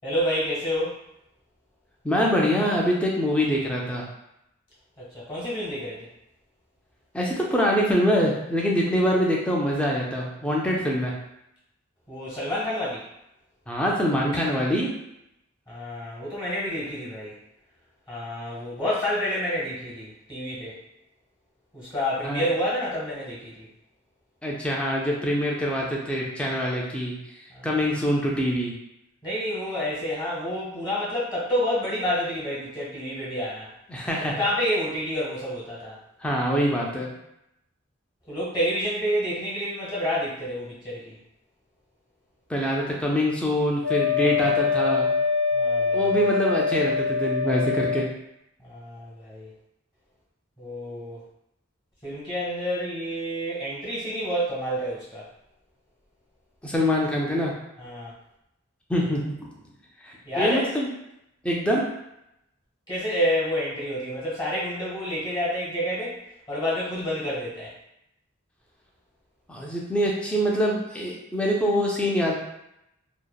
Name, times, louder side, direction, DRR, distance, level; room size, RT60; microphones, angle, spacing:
voice 1, 0.0-1.0 5.0-6.1 12.1-13.0 14.3-14.5 15.7-17.4 18.1-20.8 21.7-23.7 27.5-27.7 29.2-33.7 34.3-36.0 38.3-41.2 44.2-44.5 45.5-46.2 48.6-49.5 50.6-51.2 52.0-55.3 57.8-58.1 60.2-60.7 62.9-66.2 66.5-67.7, equal, 20° left, -8 dB, 1.1 m, -29 dB
voice 2, 2.0-4.0 7.1-11.1 13.7-14.9 22.2-22.5 24.4-27.2 27.6-28.7 33.9-34.3 36.2-37.1 42.5-45.1 45.9-48.1 56.6-57.5 58.9-59.3 60.0-60.9 61.4-61.8 69.5-72.3, equal, 5° left, -3 dB, 0.4 m, -24 dB
Wind instrument woodwind instrument, 43.8-48.1, left 5 dB, 65° right, 0.6 m, -24 dB
2.8 x 2.1 x 2.2 m, 0.83 s
head